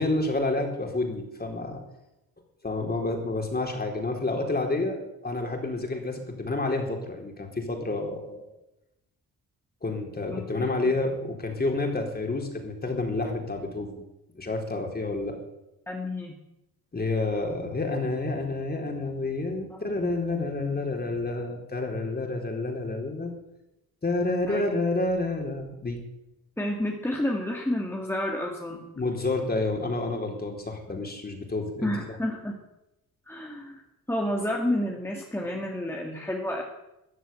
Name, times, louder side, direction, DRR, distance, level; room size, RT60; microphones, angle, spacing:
voice 1, 0.0-1.8 2.6-8.5 9.8-14.0 14.3-15.4 16.9-23.4 24.0-26.0 28.9-31.9, left 2 dB, 25° left, 2 dB, 4.1 m, -29 dB
voice 2, 10.3-10.7 15.9-16.3 24.5-24.6 26.6-28.9 31.8-32.5 33.3-33.8 34.1-36.6, left 1 dB, 5° left, 0 dB, 2.3 m, -30 dB
14.5 x 10.0 x 9.2 m, 0.92 s
cardioid pair, 95°, 36 cm